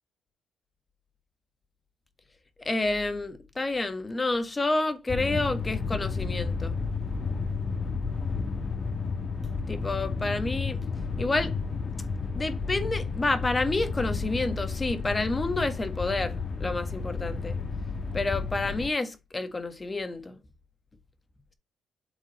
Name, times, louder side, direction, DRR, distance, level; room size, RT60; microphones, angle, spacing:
voice 1, 2.6-6.8 9.7-10.8 11.2-11.5 12.3-17.6 18.1-20.3, left 2 dB, 25° left, 1.5 m, -29 dB
sound 1, 5.1-18.9, left 4 dB, 45° left, 1.3 m, -32 dB
8.2 x 3.7 x 4.2 m
cardioid pair, 75°, 0 cm